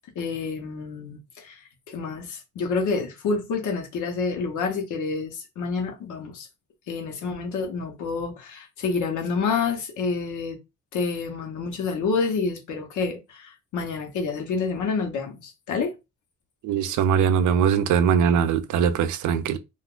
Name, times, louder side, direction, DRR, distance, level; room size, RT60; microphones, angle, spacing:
voice 1, 0.1-6.5 6.9-10.6 10.9-15.9 16.8-16.9, left 4 dB, 80° left, 1.0 m, -28 dB
voice 2, 16.6-19.6, right 7 dB, 75° right, 0.5 m, -21 dB
2.5 x 2.4 x 3.7 m
cardioid pair, 90°, 30 cm